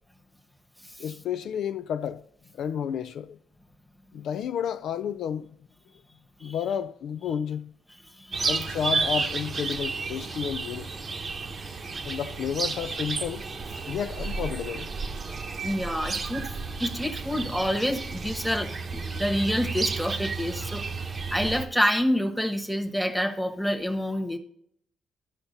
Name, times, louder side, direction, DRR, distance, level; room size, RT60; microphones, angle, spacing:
voice 1, 1.0-2.2 2.5-3.4 4.1-5.5 6.4-7.7 8.4-10.9 12.0-13.5 13.9-14.9, left 8 dB, 70° left, 0.4 m, -31 dB
voice 2, 7.9-8.5 15.6-16.5 16.8-20.8 21.3-24.4, equal, ahead, 1.2 m, -28 dB
sound 1, 8.3-21.7, right 4 dB, 40° right, 0.9 m, -32 dB
12.5 x 5.7 x 4.0 m
cardioid pair, 95°, 0 cm